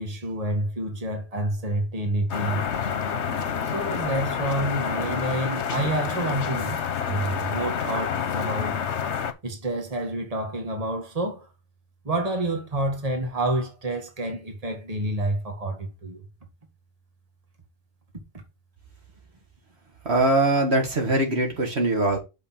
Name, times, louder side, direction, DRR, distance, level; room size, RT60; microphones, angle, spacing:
voice 1, 0.0-2.6 3.7-8.8 9.4-11.5 12.0-16.2, right 1 dB, 35° right, 1.8 m, -28 dB
sound 1, 2.3-9.3, left 7 dB, 80° left, 1.2 m, -28 dB
voice 2, 20.1-22.2, right 2 dB, 65° right, 2.0 m, -22 dB
6.5 x 5.6 x 4.4 m
omnidirectional pair, 1.2 m